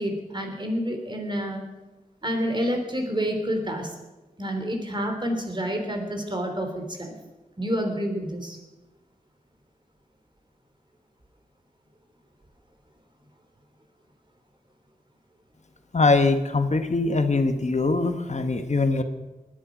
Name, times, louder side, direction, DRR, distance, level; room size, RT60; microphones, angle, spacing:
voice 1, 0.0-1.6 2.2-3.9 4.4-7.1 7.6-8.6, equal, 30° right, 4 dB, 3.2 m, -28 dB
voice 2, 15.9-19.0, left 3 dB, 50° left, 8 dB, 1.2 m, -22 dB
20.0 x 10.0 x 5.1 m, 1.1 s
wide cardioid pair, 70°, 15 cm